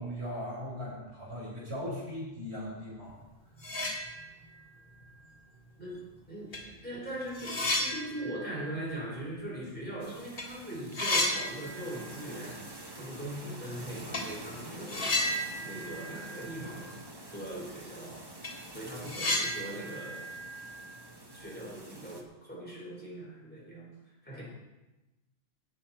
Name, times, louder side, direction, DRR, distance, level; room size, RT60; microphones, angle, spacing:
voice 1, 0.0-3.2, equal, 55° right, -5 dB, 4.4 m, -38 dB
sound 1, 3.2-3.3 3.5-4.6 5.0-5.1 6.0-6.1 6.5-10.0 10.2-10.5 10.7-12.3 12.5-12.6 14.1-14.3 14.9-17.0 17.3-17.4 17.8-17.9 18.2-21.4, left 1 dB, 40° left, 2.2 m, -34 dB
voice 2, 5.8-15.3 15.6-16.9 17.3-18.3 18.7-20.3 21.3-23.9 24.2-24.4, right 1 dB, 10° left, -6 dB, 4.3 m, -41 dB
sound 2, 10.0-22.2, right 1 dB, 20° right, 1.0 m, -47 dB
17.0 x 7.1 x 4.3 m, 1.1 s
omnidirectional pair, 1.3 m